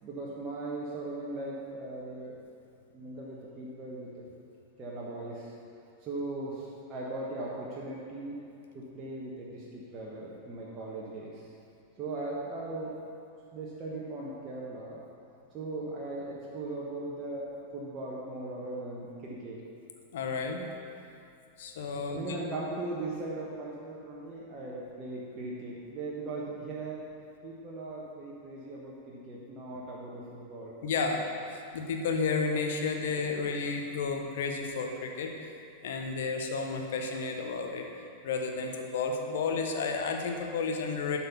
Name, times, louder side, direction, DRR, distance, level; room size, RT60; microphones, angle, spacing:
voice 1, 0.0-2.4 2.9-4.2 4.8-5.5 6.0-8.4 8.7-11.5 12.0-12.9 13.5-15.0 15.5-19.6 22.1-27.0 27.4-30.7, right 2 dB, 30° right, -5 dB, 1.2 m, -39 dB
voice 2, 20.1-20.6 21.6-22.4 30.8-31.2 31.5-35.3 35.8-37.9 38.2-41.2, left 4 dB, 55° left, 3 dB, 0.9 m, -32 dB
11.5 x 4.3 x 5.8 m, 2.5 s
figure-of-eight pair, 90°, 0 cm